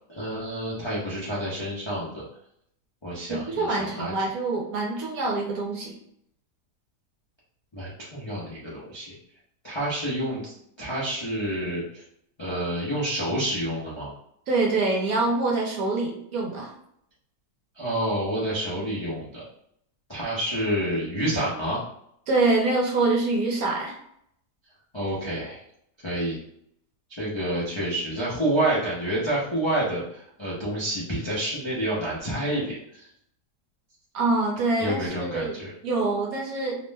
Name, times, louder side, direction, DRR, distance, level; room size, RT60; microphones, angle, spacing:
voice 1, 0.1-2.2 3.0-4.1 7.7-9.1 9.6-12.0 12.4-14.1 17.8-19.4 20.1-21.8 24.9-25.6 26.0-26.4 27.1-33.1 34.8-35.7, right 1 dB, 45° left, -9 dB, 0.3 m, -28 dB
voice 2, 3.3-5.9 14.5-16.7 22.3-24.0 34.1-35.6 35.8-36.8, right 3 dB, 65° right, -1 dB, 1.1 m, -25 dB
2.9 x 2.1 x 3.3 m, 0.71 s
omnidirectional pair, 1.8 m